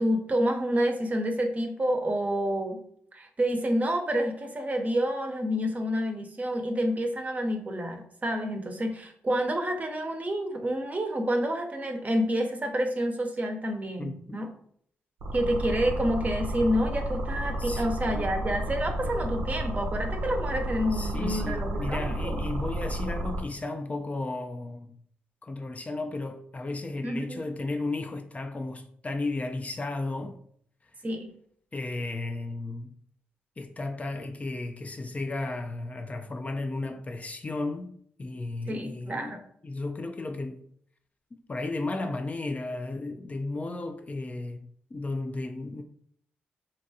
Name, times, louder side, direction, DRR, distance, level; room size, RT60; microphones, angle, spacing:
voice 1, 0.0-2.8 3.1-14.5 15.3-22.4 27.0-27.5 31.0-31.3 38.7-39.4, equal, 35° right, 0.6 m, -28 dB
sound 1, 15.2-23.4, right 1 dB, 90° right, 0.5 m, -32 dB
voice 2, 20.9-25.0 25.4-30.4 31.7-32.9 33.6-37.9 38.2-40.6 41.5-45.8, left 2 dB, 30° left, 0.3 m, -34 dB
2.6 x 2.2 x 2.6 m
supercardioid pair, 45°, 5 cm